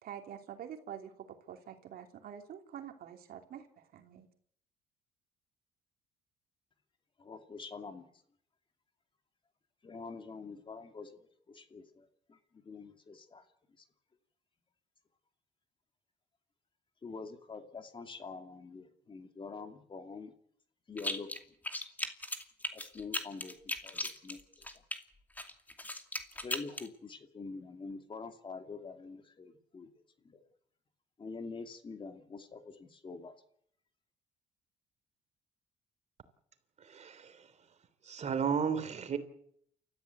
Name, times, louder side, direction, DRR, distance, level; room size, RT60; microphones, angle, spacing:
voice 1, 0.0-3.7 3.9-4.3, right 9 dB, 65° right, 5 dB, 2.9 m, -46 dB
voice 2, 7.2-8.1 9.8-13.5 13.8-13.9 17.0-20.3 20.9-21.3 22.7-24.8 26.3-30.4 31.2-33.3, left 4 dB, 30° left, 7 dB, 2.5 m, -46 dB
sound 1, 21.0-21.4 21.6-25.0 25.4-26.9, left 1 dB, 10° left, 2.5 m, -37 dB
voice 3, 36.8-37.5 38.0-39.2, right 6 dB, 40° right, 11 dB, 3.2 m, -34 dB
29.0 x 14.5 x 8.2 m, 0.68 s
cardioid pair, 110°, 17 cm